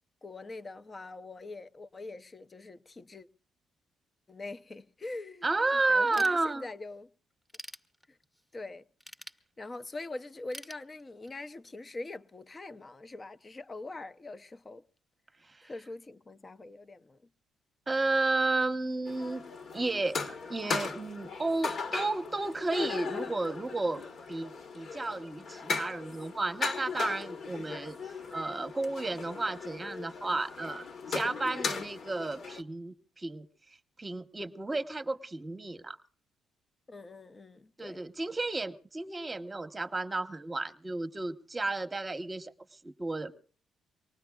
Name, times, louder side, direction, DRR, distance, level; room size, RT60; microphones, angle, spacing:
voice 1, 0.2-3.3 4.3-5.5 5.7-7.1 8.1-8.2 8.5-8.9 9.6-14.8 15.6-17.2 36.9-38.0, left 2 dB, 30° left, 0.7 m, -43 dB
voice 2, 5.4-6.6 15.5-15.7 17.9-19.4 19.7-24.0 24.3-28.0 28.3-33.5 34.0-36.0 37.8-42.5 42.8-43.4, right 2 dB, 20° right, 1.0 m, -32 dB
Ratchet pawl / Tools, 6.1-6.9 7.3-8.4 9.0-10.0 10.5-11.5, equal, 10° left, 1.1 m, -47 dB
sound 1, 19.1-32.6, left 4 dB, 60° left, 1.4 m, -38 dB
24.5 x 19.5 x 2.4 m
cardioid pair, 90°, 0 cm